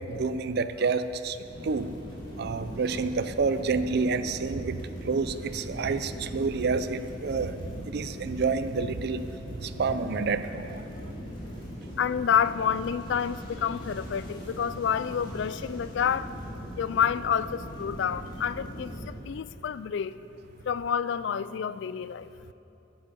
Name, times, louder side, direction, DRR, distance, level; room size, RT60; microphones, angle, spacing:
voice 1, 0.1-1.4 1.6-1.9 2.4-4.8 5.0-7.6 7.9-9.2 9.6-10.8, right 4 dB, 55° right, 12 dB, 0.5 m, -28 dB
sound 1, 1.4-19.0, equal, 25° left, 2.7 m, -40 dB
voice 2, 12.0-16.3 16.8-20.2 20.7-22.3, left 8 dB, 65° left, 15 dB, 0.3 m, -28 dB
10.5 x 8.9 x 6.8 m, 2.9 s
head